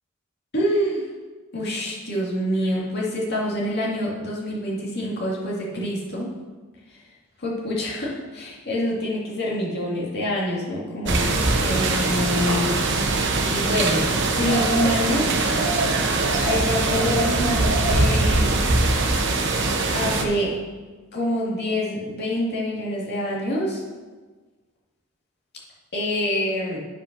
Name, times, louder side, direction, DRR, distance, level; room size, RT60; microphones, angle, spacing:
voice 1, 0.5-1.1 1.5-6.3 7.4-12.7 13.5-15.4 16.4-18.5 19.9-20.6 21.1-23.8 25.9-26.8, left 1 dB, 50° left, -4 dB, 2.1 m, -26 dB
sound 1, 11.1-20.2, right 2 dB, 55° right, 1.0 m, -22 dB
9.0 x 5.4 x 5.9 m, 1.3 s
head